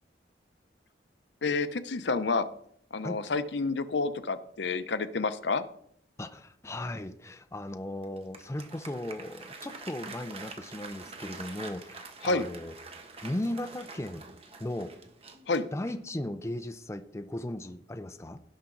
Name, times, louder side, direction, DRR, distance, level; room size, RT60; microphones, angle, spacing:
voice 1, 1.4-2.4 2.9-5.6 12.2-12.4 15.5-15.7, left 3 dB, 75° left, 12 dB, 0.7 m, -29 dB
voice 2, 6.2-12.7 13.2-14.3 14.6-14.9 15.7-18.4, left 1 dB, 15° left, 9 dB, 0.5 m, -37 dB
Applause, 8.0-16.2, right 4 dB, 35° right, 1.2 m, -46 dB
17.0 x 5.9 x 3.9 m, 0.67 s
head